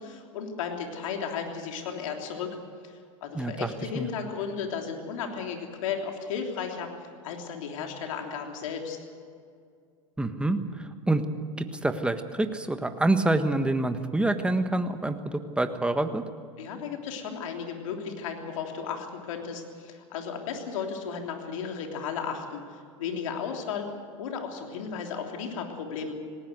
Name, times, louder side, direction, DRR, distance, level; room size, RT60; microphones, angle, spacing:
voice 1, 0.0-2.6 2.8-6.9 7.2-9.0 16.6-22.6 23.0-23.9 24.2-26.1, left 6 dB, 75° left, 3 dB, 3.3 m, -34 dB
voice 2, 3.3-4.1 10.2-11.2 11.6-16.2, right 2 dB, 5° right, 8 dB, 1.5 m, -27 dB
19.0 x 18.5 x 8.0 m, 2.2 s
hypercardioid pair, 95°, 17 cm